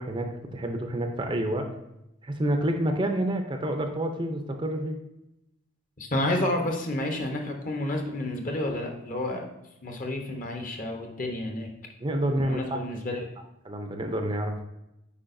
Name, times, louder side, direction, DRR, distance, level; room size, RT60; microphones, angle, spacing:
voice 1, 0.0-1.7 2.2-5.0 12.0-12.8 13.1-13.2 13.6-14.7, right 1 dB, 25° right, 5 dB, 0.5 m, -28 dB
voice 2, 6.0-9.4 9.8-11.7 12.4-13.3, left 1 dB, 40° left, 2 dB, 0.9 m, -30 dB
8.5 x 4.8 x 2.6 m, 0.88 s
head